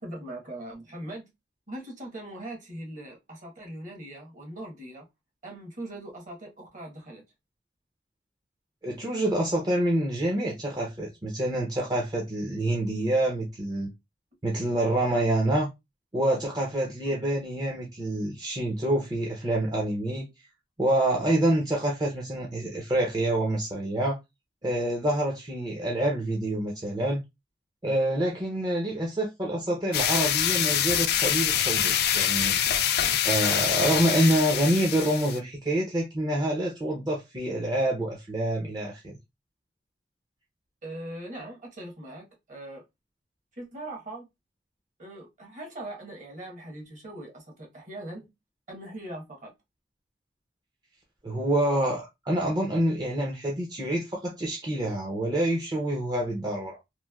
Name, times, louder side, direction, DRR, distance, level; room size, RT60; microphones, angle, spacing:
voice 1, 0.0-1.3 1.7-5.1 5.4-7.2 17.0-17.1 40.8-42.8 43.5-44.3 45.0-48.3 48.7-49.5, right 1 dB, 45° right, 1.1 m, -40 dB
voice 2, 8.8-13.9 14.4-15.7 16.1-20.3 20.8-24.2 24.6-27.2 27.8-32.6 33.2-39.2 51.2-56.8, right 1 dB, 25° right, 0.5 m, -27 dB
sound 1, 29.9-35.4, left 10 dB, 60° left, 0.4 m, -25 dB
3.1 x 2.5 x 2.3 m
head